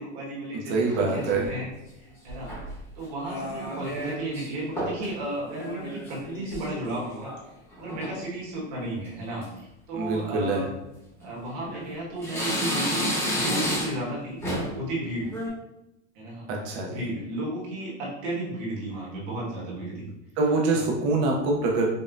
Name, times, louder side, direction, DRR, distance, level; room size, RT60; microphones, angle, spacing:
voice 1, 0.0-1.7 2.0-2.5 2.9-7.3 7.8-10.7 11.2-14.4 14.7-15.3 16.1-16.4 16.8-20.1 20.7-20.9, right 1 dB, 40° right, -5 dB, 1.3 m, -33 dB
voice 2, 0.7-1.5 9.9-10.6 16.5-17.0 20.4-21.8, right 3 dB, 25° right, 0 dB, 0.4 m, -25 dB
sound 1, 0.9-1.6 2.3-2.8 3.2-4.5 4.8-5.1 5.4-7.4 7.7-8.2 8.7-9.1 9.4-9.5 10.4-10.6 11.2-11.9 12.2-14.1 14.4-14.8 15.2-15.5, equal, 5° left, 0.9 m, -32 dB
5.2 x 2.1 x 2.4 m, 0.89 s
supercardioid pair, 175°, 36 cm